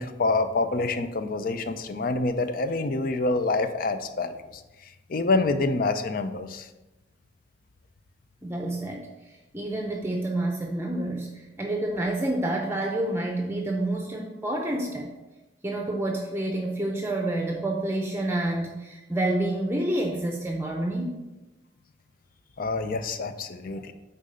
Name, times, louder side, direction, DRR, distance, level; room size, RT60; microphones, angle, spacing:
voice 1, 0.0-4.6 5.1-6.7 22.6-23.9, left 3 dB, 50° left, 9 dB, 0.6 m, -27 dB
voice 2, 8.4-15.1 15.6-21.2, right 1 dB, 15° right, 1 dB, 0.6 m, -28 dB
8.8 x 4.1 x 5.5 m, 1.1 s
head